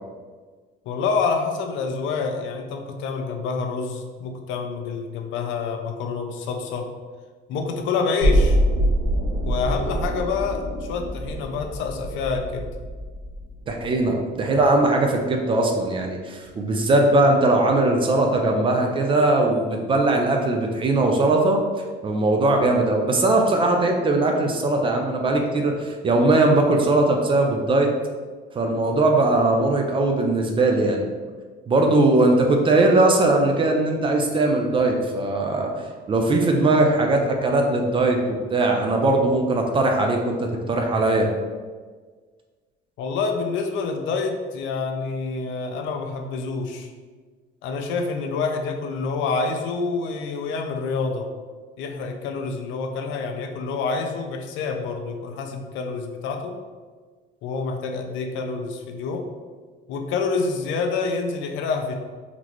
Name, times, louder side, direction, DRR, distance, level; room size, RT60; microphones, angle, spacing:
voice 1, 0.9-6.9 7.5-8.6 9.4-12.7 43.0-46.9 47.6-51.3 51.8-56.5 57.4-59.2 59.9-61.9, left 4 dB, 70° left, 3 dB, 0.5 m, -27 dB
sound 1, 8.2-14.2 14.5-14.6, equal, 85° right, 1.1 m, -24 dB
voice 2, 13.7-21.6 22.0-27.9 28.6-31.1 31.7-35.7 36.1-41.3, right 2 dB, 25° right, 2 dB, 0.4 m, -20 dB
4.0 x 3.0 x 3.0 m, 1.5 s
cardioid pair, 175°, 20 cm